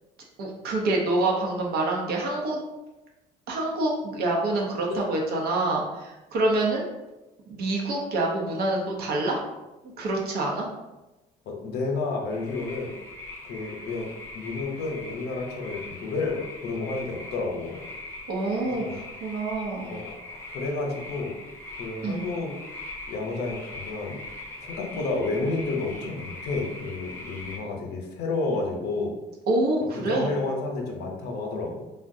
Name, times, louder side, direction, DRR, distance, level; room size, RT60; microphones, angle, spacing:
voice 1, 0.4-2.6 3.5-6.8 7.5-9.4 10.0-10.7 18.3-19.9 22.0-22.3 29.5-30.3, right 2 dB, 70° right, -1 dB, 0.8 m, -26 dB
voice 2, 11.5-12.9 13.4-14.1 14.3-17.8 18.7-19.0 19.9-21.3 21.8-22.5 23.1-24.2 24.6-29.1 30.0-31.9, left 3 dB, 80° left, 1 dB, 0.7 m, -30 dB
sound 1, 12.3-27.6, left 2 dB, 15° left, 0.7 m, -41 dB
3.6 x 2.1 x 2.6 m, 1.0 s
cardioid pair, 110°, 17 cm